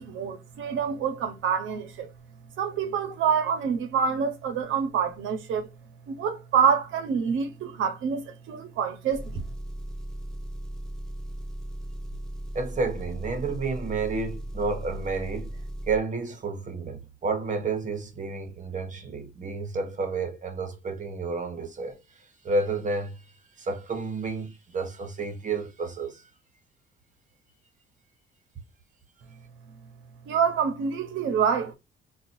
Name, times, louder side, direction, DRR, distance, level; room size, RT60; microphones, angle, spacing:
voice 1, 0.0-2.1 2.6-5.7 6.1-9.4 30.3-31.7, right 7 dB, 80° right, 0.8 m, -26 dB
Engine, 9.1-16.0, right 1 dB, 5° left, 0.5 m, -37 dB
voice 2, 12.5-15.6 15.9-26.2, right 3 dB, 40° right, 1.1 m, -31 dB
3.8 x 2.4 x 2.6 m
cardioid pair, 90°, 20 cm